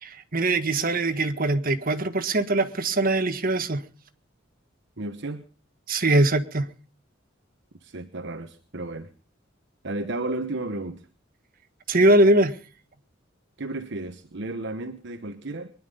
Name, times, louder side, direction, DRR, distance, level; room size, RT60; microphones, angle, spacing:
voice 1, 0.0-3.8 5.9-6.7 11.9-12.5, right 2 dB, 45° right, 1.6 m, -22 dB
voice 2, 5.0-5.5 7.8-9.1 9.8-11.0 13.6-15.7, right 2 dB, 65° right, 1.1 m, -33 dB
23.0 x 11.0 x 5.5 m
head